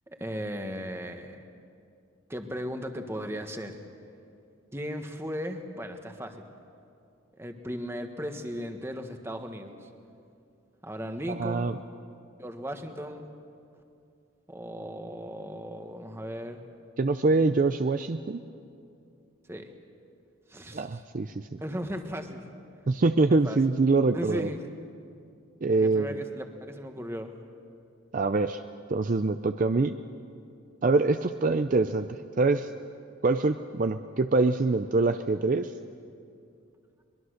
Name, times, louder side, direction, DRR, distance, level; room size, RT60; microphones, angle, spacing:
voice 1, 0.1-1.4 2.3-3.8 4.7-6.5 7.4-9.8 10.8-11.7 12.4-13.3 14.5-16.6 19.5-19.7 20.5-21.0 21.6-22.4 23.3-23.6 24.1-24.6 25.7-27.3, equal, 10° right, 5 dB, 1.3 m, -36 dB
voice 2, 11.3-11.8 17.0-18.4 20.7-21.5 22.9-24.5 25.6-26.2 28.1-28.6 28.9-30.0 30.8-32.7 33.2-35.7, right 3 dB, 40° right, 9 dB, 0.5 m, -24 dB
23.0 x 22.0 x 6.5 m, 2.5 s
head